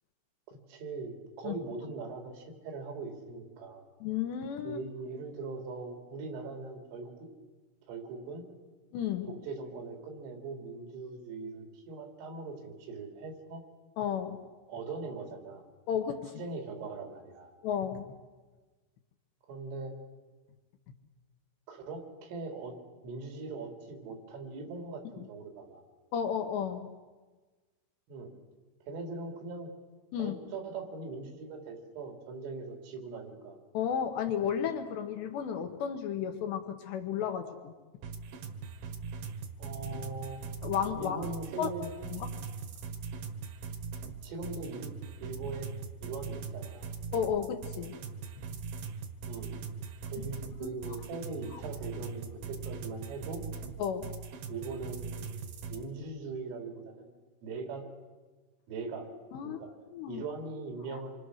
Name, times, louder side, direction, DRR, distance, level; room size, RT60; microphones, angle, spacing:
voice 1, 0.5-3.8 4.6-7.3 7.9-8.5 9.3-13.6 14.7-15.6 16.3-17.5 19.5-19.9 21.7-22.8 23.0-25.8 28.1-28.3 28.9-29.7 30.2-33.6 39.6-40.4 41.0-41.9 44.2-44.9 45.2-45.7 46.0-46.9 49.3-49.5 50.1-53.4 54.5-55.4 55.7-57.1 57.4-57.8 58.7-59.1 59.4-59.7 60.1-61.2, right 3 dB, 85° right, 4 dB, 5.6 m, -41 dB
voice 2, 4.0-4.8 8.9-9.3 14.0-14.4 15.9-16.3 17.6-18.1 26.1-26.9 30.1-30.4 33.7-37.7 40.6-41.3 41.6-41.7 42.0-42.4 47.1-48.0 50.6-50.8 51.5-51.6 53.8-54.1 59.3-59.6 59.9-60.2 60.9-61.2, left 8 dB, 70° left, 5 dB, 3.0 m, -33 dB
sound 1, 38.0-55.8, right 5 dB, 65° right, 2.8 m, -41 dB
27.0 x 25.0 x 6.4 m, 1.3 s
omnidirectional pair, 5.8 m